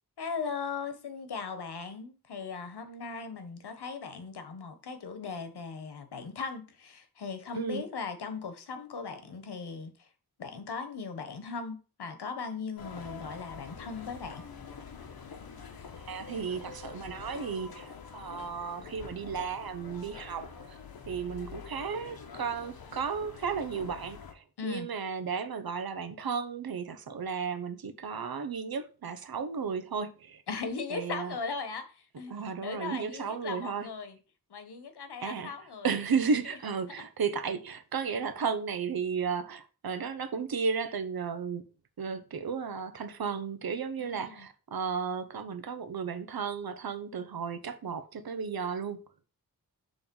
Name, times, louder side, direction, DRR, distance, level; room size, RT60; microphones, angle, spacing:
voice 1, 0.2-10.1 10.4-14.4 24.6-24.9 30.5-32.3 32.6-34.2 34.5-35.9 36.3-36.4 44.0-44.5, left 5 dB, 85° left, 1.2 m, -38 dB
voice 2, 7.5-7.9 16.0-20.8 21.1-30.4 30.9-31.4 32.3-33.9 35.2-35.5 35.8-41.6 42.0-49.0, right 6 dB, 65° right, 0.9 m, -34 dB
sound 1, 12.8-24.3, left 6 dB, 65° left, 1.1 m, -46 dB
7.1 x 3.4 x 5.4 m
wide cardioid pair, 105°, 38 cm